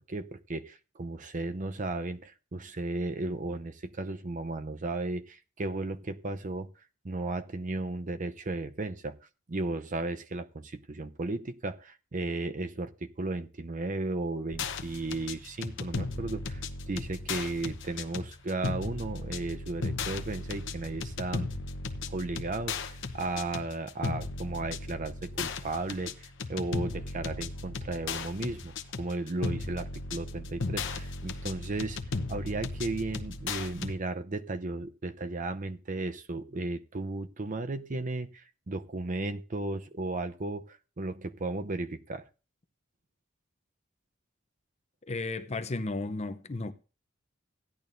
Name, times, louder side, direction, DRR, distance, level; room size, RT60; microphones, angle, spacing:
voice 1, 0.1-6.7 7.0-9.2 9.5-21.5 22.1-32.0 32.3-42.2, right 2 dB, 40° right, 0.7 m, -35 dB
sound 1, 14.5-33.9, left 3 dB, 65° left, 0.9 m, -36 dB
voice 2, 45.0-46.7, left 2 dB, 30° left, 0.7 m, -34 dB
15.5 x 10.5 x 2.6 m
head